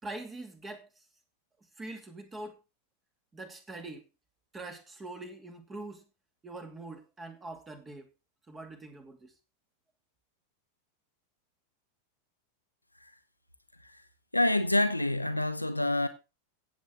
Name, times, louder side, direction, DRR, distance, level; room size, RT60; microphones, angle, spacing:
voice 1, 0.0-1.0 1.8-2.6 3.3-4.1 4.5-6.1 6.4-8.1 8.5-9.3, right 2 dB, 15° right, 2.6 m, -43 dB
voice 2, 14.3-16.1, left 1 dB, 85° left, 1.0 m, -27 dB
16.0 x 7.9 x 3.7 m
figure-of-eight pair, 90°, 0 cm